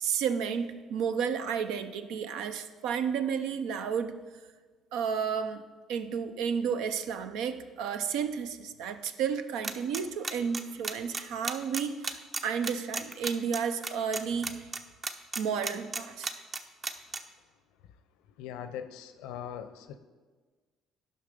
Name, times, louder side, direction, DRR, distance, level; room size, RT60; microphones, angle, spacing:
voice 1, 0.0-4.2 4.9-5.6 5.9-14.7 15.4-16.3, right 7 dB, 75° right, 10 dB, 0.6 m, -32 dB
sound 1, 9.6-17.2, right 3 dB, 35° right, 0.8 m, -33 dB
voice 2, 18.4-20.0, left 9 dB, 80° left, 11 dB, 0.6 m, -40 dB
10.5 x 5.8 x 5.2 m, 1.4 s
supercardioid pair, 70°, 0 cm